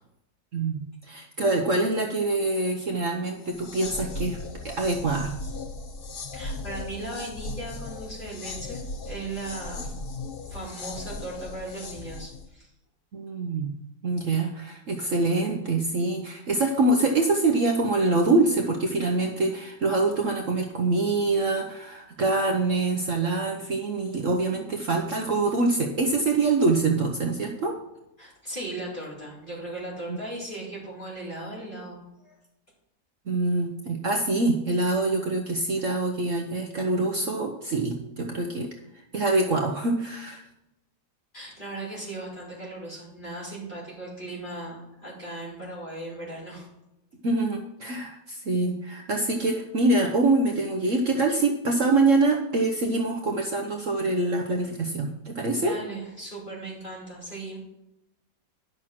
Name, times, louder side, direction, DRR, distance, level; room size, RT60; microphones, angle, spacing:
voice 1, 0.5-4.4 4.6-5.3 13.1-13.7 14.0-27.8 30.1-30.2 33.3-38.7 39.1-40.4 47.2-55.7, right 2 dB, 55° right, 2 dB, 1.2 m, -25 dB
sound 1, 3.4-12.5, left 2 dB, 45° left, 0.8 m, -37 dB
voice 2, 6.3-9.9 10.4-12.7 28.2-32.3 41.3-46.7 55.4-57.6, right 2 dB, 30° left, -6 dB, 4.5 m, -37 dB
11.0 x 6.2 x 5.9 m, 0.89 s
omnidirectional pair, 1.8 m